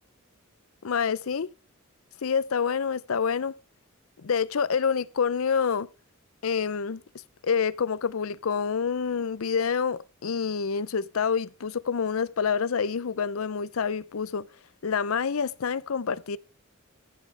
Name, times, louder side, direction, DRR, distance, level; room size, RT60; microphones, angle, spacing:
voice 1, 0.8-1.5 2.2-3.5 4.2-5.9 6.4-7.0 7.4-14.5 14.8-16.4, left 6 dB, 70° left, 0.6 m, -27 dB
15.5 x 9.8 x 3.4 m
head